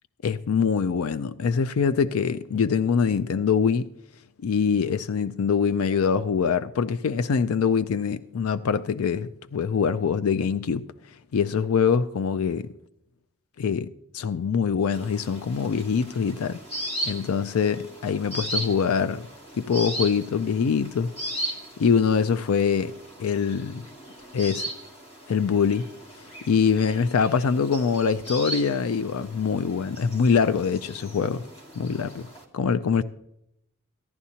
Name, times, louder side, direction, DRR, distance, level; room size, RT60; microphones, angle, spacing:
voice 1, 0.2-3.9 4.4-10.8 11.3-12.7 13.6-16.6 17.1-19.3 19.5-21.1 21.8-22.9 23.2-23.8 24.3-24.6 25.3-25.8 26.4-31.4 31.8-32.3 32.5-33.0, left 6 dB, 70° left, 0.4 m, -24 dB
sound 1, 14.9-32.4, right 1 dB, 25° left, 1.6 m, -37 dB
16.0 x 11.0 x 2.8 m
head